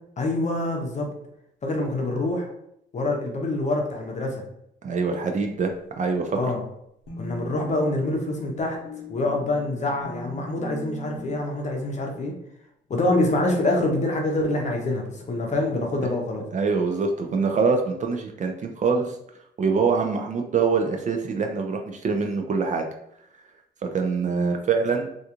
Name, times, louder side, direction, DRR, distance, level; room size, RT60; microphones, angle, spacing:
voice 1, 0.2-1.1 1.6-2.5 2.9-4.4 6.4-6.6 7.2-8.8 9.1-12.3 12.9-16.5, left 2 dB, 35° left, 1 dB, 0.7 m, -25 dB
voice 2, 4.8-5.7 6.0-6.5 16.5-19.1 19.6-22.8 23.9-25.1, right 5 dB, 40° right, 3 dB, 0.4 m, -24 dB
sound 1, 7.1-11.4, left 2 dB, 90° left, 0.7 m, -39 dB
2.4 x 2.3 x 2.8 m, 0.75 s
cardioid pair, 90°, 20 cm